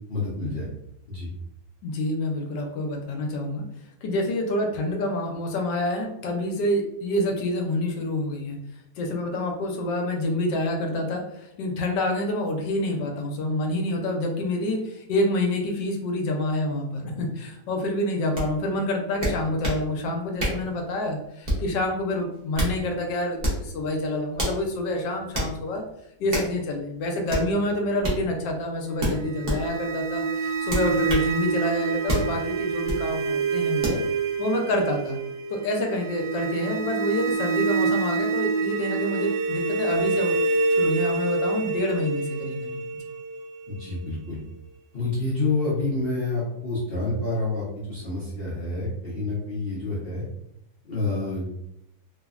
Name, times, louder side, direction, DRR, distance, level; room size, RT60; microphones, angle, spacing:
voice 1, 0.1-0.7 1.1-1.3 43.7-44.4 44.9-50.2 50.8-51.5, left 2 dB, 60° left, -8 dB, 0.6 m, -28 dB
voice 2, 1.8-3.6 4.0-8.6 9.0-25.8 26.2-34.0 34.4-35.2 35.5-42.8, left 1 dB, 80° left, 2 dB, 1.2 m, -27 dB
sound 1, 18.4-18.5 19.2-19.8 20.4-20.7 21.4-21.7 22.3-22.8 23.4-23.7 24.4-24.6 25.3-25.5 26.3-26.5 27.3-27.5 28.0-28.2 29.0-29.6 30.7-31.3 32.1-32.3 32.9-33.0 33.8-34.0, right 1 dB, 45° right, 0.5 m, -27 dB
sound 2, 29.1-44.1, right 4 dB, 60° right, 1.2 m, -27 dB
3.3 x 2.1 x 2.3 m, 0.79 s
omnidirectional pair, 1.9 m